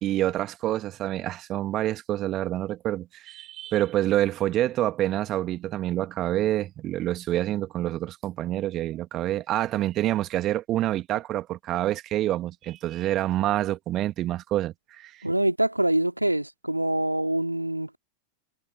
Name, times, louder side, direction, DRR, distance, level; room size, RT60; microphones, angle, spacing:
voice 1, 0.0-15.1, right 14 dB, 35° right, 1.9 m, -27 dB
voice 2, 15.2-18.0, right 1 dB, 85° right, 2.6 m, -25 dB
figure-of-eight pair, 90°, 0 cm